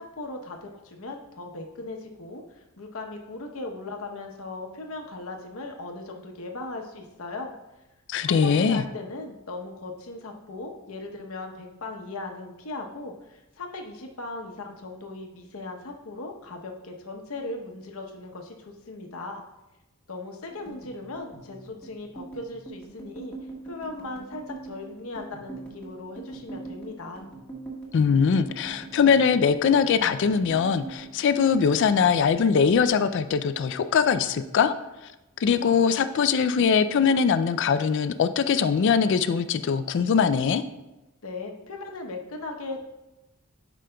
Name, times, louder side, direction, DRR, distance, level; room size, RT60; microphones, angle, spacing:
voice 1, 0.0-7.5 8.2-19.4 20.1-23.3 23.6-27.3 41.2-42.8, left 2 dB, 75° left, 3 dB, 0.9 m, -38 dB
voice 2, 8.1-8.8 27.9-34.7 35.4-40.6, left 6 dB, 55° left, 11 dB, 0.3 m, -22 dB
sound 1, 20.5-33.1 33.3-34.4 34.7-35.0 35.3-36.0, right 3 dB, 5° left, 1.4 m, -43 dB
11.0 x 5.0 x 2.3 m, 0.99 s
head